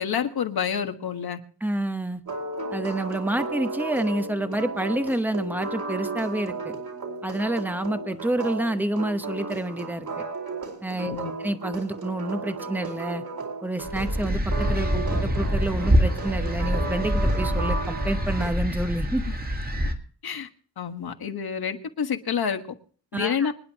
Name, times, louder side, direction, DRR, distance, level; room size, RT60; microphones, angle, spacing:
voice 1, 0.0-1.4 11.0-11.3 19.3-19.4 20.2-20.5 20.8-22.6 23.1-23.5, left 7 dB, 65° left, 7 dB, 1.5 m, -28 dB
voice 2, 1.6-2.2 2.7-6.7 7.2-10.2 10.8-13.2 13.6-19.2 23.1-23.5, right 1 dB, 5° right, 9 dB, 0.9 m, -28 dB
sound 1, 2.3-18.5, right 3 dB, 60° right, 4.4 m, -34 dB
sound 2, 13.8-19.9, equal, 25° right, 1.9 m, -25 dB
25.5 x 10.5 x 2.9 m, 0.43 s
wide cardioid pair, 170°, 40 cm